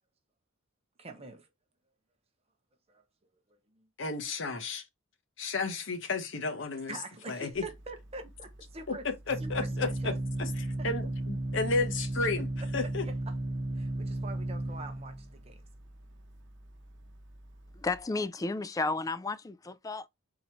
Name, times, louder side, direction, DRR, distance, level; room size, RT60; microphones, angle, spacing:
voice 1, 1.0-1.5 2.9-3.0 3.5-3.9 6.9-9.0 9.4-10.2 10.8-10.9 12.8-12.9 13.7-15.6, right 3 dB, 30° right, 0.7 m, -45 dB
voice 2, 4.0-4.9 5.4-7.0 7.3-7.6 8.9-10.1 10.4-13.1, left 3 dB, 60° left, 0.9 m, -33 dB
Organ, 7.5-18.0, right 1 dB, 60° right, 0.9 m, -35 dB
voice 3, 17.7-20.1, left 3 dB, 15° left, 0.3 m, -33 dB
3.9 x 3.0 x 4.3 m
head